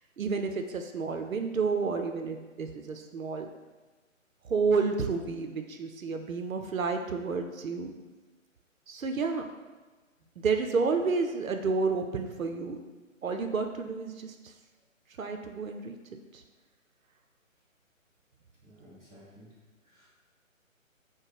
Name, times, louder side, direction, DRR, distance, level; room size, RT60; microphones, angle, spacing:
voice 1, 0.2-3.5 4.4-7.9 8.9-9.5 10.4-12.8 13.2-14.5 15.2-16.0 16.3-16.4, right 4 dB, 80° right, 5 dB, 0.6 m, -30 dB
voice 2, 18.6-19.5 19.8-20.1, equal, 5° left, -15 dB, 0.7 m, -54 dB
6.0 x 2.2 x 3.3 m, 1.3 s
figure-of-eight pair, 145°, 40 cm